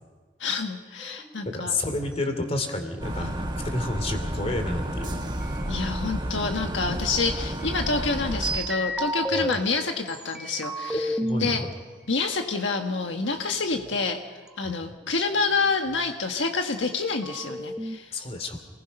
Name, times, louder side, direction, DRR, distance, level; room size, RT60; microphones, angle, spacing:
voice 1, 0.4-1.7 3.2-3.3 5.7-11.6 12.1-18.1, left 4 dB, 80° left, 4 dB, 1.5 m, -28 dB
sound 1, 1.0-1.7 5.4-6.8 7.6-9.5 10.1-11.7 12.6-13.9 14.5-14.6 14.8-16.1 16.7-16.8 17.0-18.0, equal, 5° right, 1.0 m, -33 dB
voice 2, 1.5-5.2 9.3-9.5 10.9-11.7 14.6-14.7 18.1-18.6, left 2 dB, 35° left, 6 dB, 2.8 m, -30 dB
sound 2, 3.0-8.6, equal, 25° right, 1.8 m, -31 dB
29.0 x 20.0 x 5.5 m, 1.5 s
head